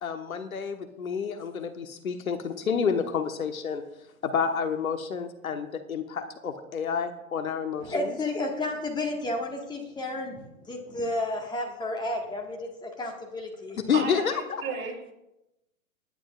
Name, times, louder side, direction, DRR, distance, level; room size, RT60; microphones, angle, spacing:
voice 1, 0.0-3.8 4.2-8.1 13.9-14.6, left 6 dB, 80° left, 7 dB, 1.3 m, -29 dB
voice 2, 7.8-13.8, left 2 dB, 10° left, 0 dB, 1.6 m, -32 dB
voice 3, 13.9-15.1, right 5 dB, 30° right, 0 dB, 3.0 m, -34 dB
22.0 x 10.0 x 2.4 m, 0.92 s
hypercardioid pair, 115°, 41 cm